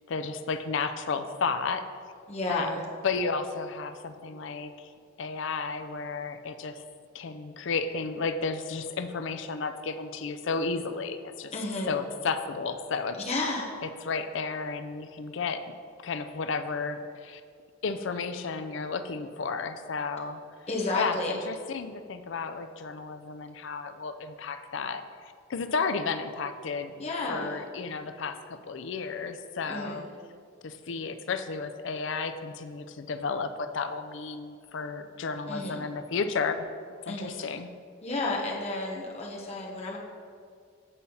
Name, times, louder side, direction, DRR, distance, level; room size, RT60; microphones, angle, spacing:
voice 1, 0.1-1.8 2.5-4.9 5.2-6.8 7.1-11.5 11.9-13.2 14.0-15.6 16.0-17.4 17.8-20.4 21.0-26.9 27.3-30.1 30.6-36.7 37.0-37.7, left 4 dB, 60° left, 9 dB, 0.4 m, -33 dB
voice 2, 2.3-2.8 11.5-11.9 13.3-13.7 20.7-21.3 27.0-27.6 29.7-30.0 35.5-35.8 37.1-37.5 38.0-40.0, left 2 dB, 30° left, -2 dB, 1.1 m, -32 dB
8.3 x 4.2 x 5.5 m, 2.2 s
head